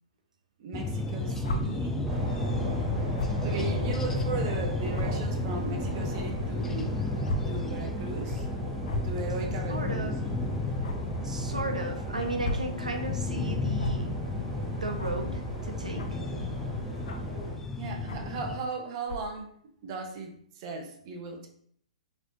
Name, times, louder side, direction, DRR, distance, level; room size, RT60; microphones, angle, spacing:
voice 1, 0.6-2.0 3.4-7.0 7.5-8.5 8.9-10.1 17.8-19.5 19.8-21.5, right 3 dB, 40° right, 4 dB, 0.6 m, -37 dB
sound 1, 0.7-18.6, left 3 dB, 10° left, 0.3 m, -33 dB
sound 2, 1.4-1.6 3.1-3.4 4.1-4.2 4.9-5.0 6.1-6.2 7.2-7.4 7.7-7.8 8.8-9.1 10.8-11.0 12.2-12.7 13.8-13.9 15.0-15.2 15.9-16.2 17.0-17.3 18.1-18.3 19.0-19.3, left 1 dB, 60° left, 0.5 m, -34 dB
sound 3, 2.1-17.5, right 1 dB, 15° right, 1.0 m, -36 dB
voice 2, 9.7-10.3 11.2-14.1 14.8-16.1, right 2 dB, 85° right, 4 dB, 0.4 m, -35 dB
3.1 x 3.0 x 2.6 m, 0.62 s
figure-of-eight pair, 120°, 4 cm